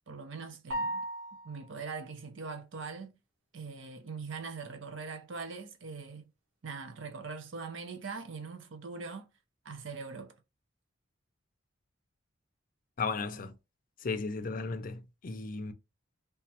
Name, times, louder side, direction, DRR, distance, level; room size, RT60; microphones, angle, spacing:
voice 1, 0.1-1.0 1.4-3.1 3.5-6.3 6.6-9.3 9.6-10.3, right 4 dB, 65° right, 0.6 m, -42 dB
sound 1, 0.7-1.8, right 1 dB, 90° right, 1.3 m, -36 dB
voice 2, 13.0-13.6 14.0-15.7, left 4 dB, 40° left, 0.4 m, -35 dB
3.4 x 2.9 x 2.9 m
head